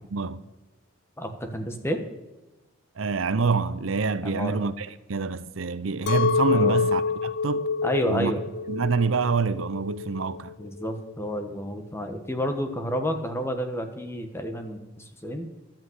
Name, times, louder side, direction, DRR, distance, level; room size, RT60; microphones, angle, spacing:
voice 1, 0.1-0.4 3.0-7.7 8.1-8.3 8.7-10.5, right 4 dB, 80° right, 0.7 m, -26 dB
voice 2, 1.2-2.0 4.2-4.6 6.5-6.8 7.8-8.4 10.6-15.5, equal, 15° left, 1.3 m, -30 dB
Chink clink, 6.1-11.2, left 5 dB, 55° left, 0.4 m, -27 dB
12.0 x 8.4 x 7.9 m
head